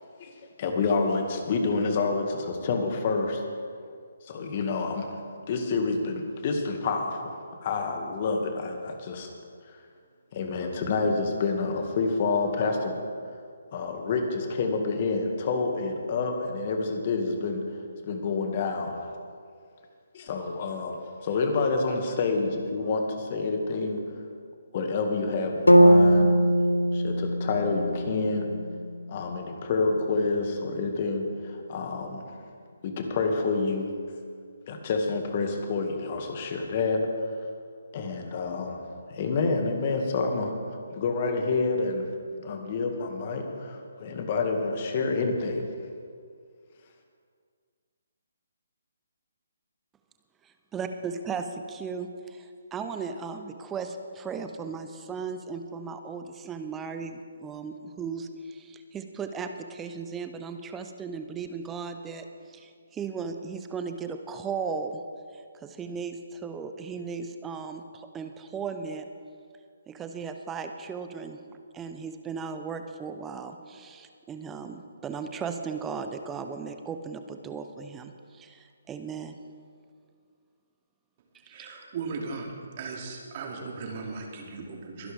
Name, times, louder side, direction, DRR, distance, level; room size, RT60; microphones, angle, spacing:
voice 1, 0.6-3.4 4.2-5.1 5.5-7.3 7.6-9.3 10.3-13.0 13.7-17.6 18.0-19.0 20.1-24.0 24.7-26.4 26.9-28.5 29.1-32.2 32.8-33.9 34.7-37.1 37.9-38.8 39.1-40.5 40.9-42.1 42.4-45.7, left 4 dB, 40° left, 4 dB, 2.1 m, -28 dB
sound 1, 25.7-29.7, equal, 90° left, 1.0 m, -21 dB
voice 2, 50.4-65.0 65.3-69.1 69.9-71.4 71.7-79.4 81.4-81.7, right 5 dB, 15° right, 7 dB, 0.7 m, -36 dB
voice 3, 81.5-82.5 82.8-85.1, right 4 dB, 40° right, 0 dB, 2.7 m, -37 dB
23.0 x 11.0 x 3.6 m, 2.2 s
figure-of-eight pair, 140°, 0 cm